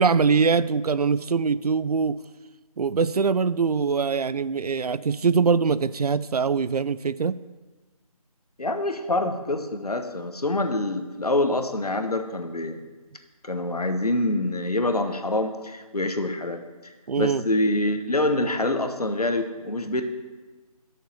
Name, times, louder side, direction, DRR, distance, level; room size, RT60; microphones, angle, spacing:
voice 1, 0.0-2.2 2.8-7.4 17.1-17.4, right 5 dB, 80° right, 17 dB, 0.4 m, -23 dB
voice 2, 8.6-12.8 13.4-20.0, left 2 dB, 85° left, 7 dB, 1.1 m, -26 dB
8.9 x 6.5 x 5.6 m, 1.3 s
figure-of-eight pair, 160°, 19 cm